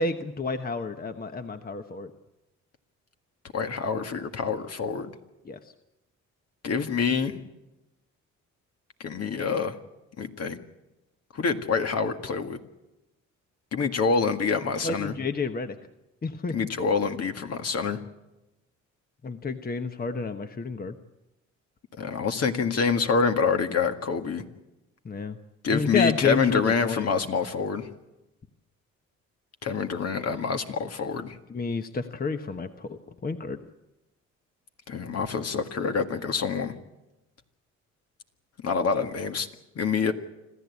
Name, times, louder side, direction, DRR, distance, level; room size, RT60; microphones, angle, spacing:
voice 1, 0.0-2.1 5.5-5.6 14.8-15.8 16.2-16.6 19.2-20.9 25.0-25.4 25.7-27.1 31.5-33.6, left 4 dB, 30° left, 7 dB, 1.1 m, -30 dB
voice 2, 3.5-5.1 6.6-7.4 9.0-9.8 10.2-10.6 11.3-12.6 13.7-15.2 16.5-18.0 22.0-24.4 25.6-27.9 29.6-31.4 34.9-36.7 38.6-39.5 39.8-40.1, left 5 dB, 55° left, 6 dB, 1.9 m, -26 dB
26.5 x 14.5 x 8.3 m, 0.99 s
cardioid pair, 90°, 30 cm